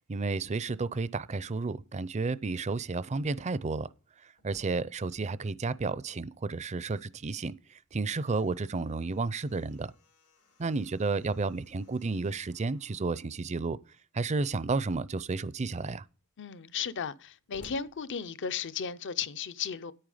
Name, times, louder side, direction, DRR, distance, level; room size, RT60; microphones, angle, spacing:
voice 1, 0.1-3.9 4.4-7.6 7.9-9.9 10.6-13.8 14.1-16.0, right 3 dB, 30° right, 0.5 m, -32 dB
Slam, 4.2-6.9 7.2-7.3 7.8-13.4 14.3-14.8 15.4-15.5 15.7-18.8, left 1 dB, 85° left, 2.3 m, -60 dB
voice 2, 16.4-19.9, left 7 dB, 55° left, 0.6 m, -35 dB
9.9 x 8.9 x 4.9 m
head